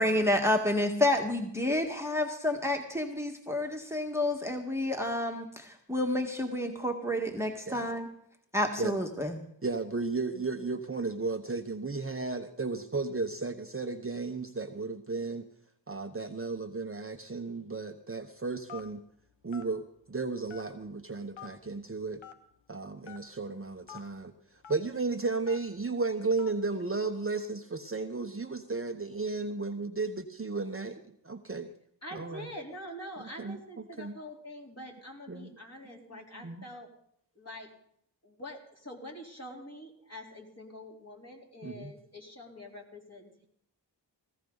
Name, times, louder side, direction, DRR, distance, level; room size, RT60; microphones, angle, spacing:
voice 1, 0.0-8.1 8.5-9.4, left 1 dB, 5° right, 3 dB, 1.7 m, -29 dB
voice 2, 9.6-15.5 15.9-19.0 19.4-22.2 22.7-24.3 24.7-31.7 32.1-32.5 33.2-34.2 35.3-35.5 36.1-36.6 41.6-41.9, right 3 dB, 30° right, 5 dB, 1.0 m, -34 dB
Telephone, 18.7-19.0 19.5-19.7 20.5-20.9 21.4-21.5 22.2-22.4 23.0-23.2 23.9-24.0 24.6-24.8 25.5-25.7 26.4-26.6, left 7 dB, 90° left, 1.1 m, -45 dB
voice 3, 32.0-36.9 37.4-37.7 38.2-43.5, left 1 dB, 35° left, -1 dB, 3.9 m, -45 dB
17.5 x 15.0 x 4.0 m, 0.69 s
cardioid pair, 40°, 45 cm